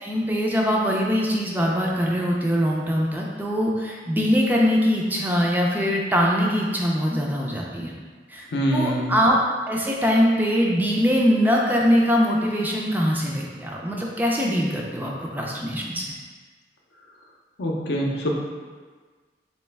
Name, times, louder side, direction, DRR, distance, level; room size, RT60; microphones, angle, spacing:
voice 1, 0.0-7.9 8.3-9.4 9.7-16.1, equal, 10° right, -2 dB, 0.3 m, -22 dB
voice 2, 8.5-9.2 17.6-18.4, equal, 70° left, -1 dB, 0.6 m, -24 dB
3.1 x 2.9 x 3.3 m, 1.5 s
head